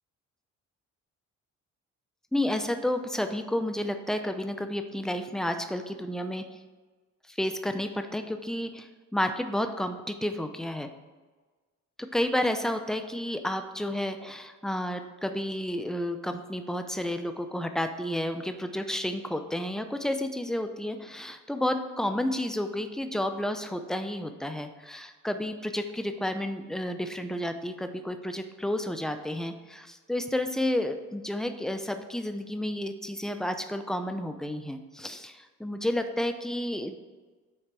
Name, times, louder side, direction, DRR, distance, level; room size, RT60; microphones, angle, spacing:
voice 1, 2.3-6.4 7.3-10.9 12.1-37.0, left 1 dB, ahead, 7 dB, 0.6 m, -31 dB
9.6 x 3.9 x 4.7 m, 1.3 s
cardioid pair, 90°, 30 cm